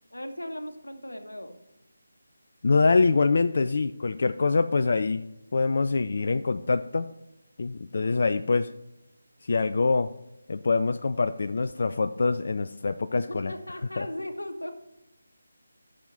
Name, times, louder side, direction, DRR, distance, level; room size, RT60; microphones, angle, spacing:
voice 1, 0.1-1.6 13.1-14.7, left 1 dB, 85° left, 7 dB, 1.3 m, -37 dB
voice 2, 2.6-5.2 5.5-7.1 7.6-8.7 9.4-10.1 10.5-13.5 14.0-14.1, left 4 dB, 50° left, 10 dB, 0.4 m, -24 dB
13.0 x 6.4 x 4.1 m, 0.91 s
figure-of-eight pair, 155°, 0 cm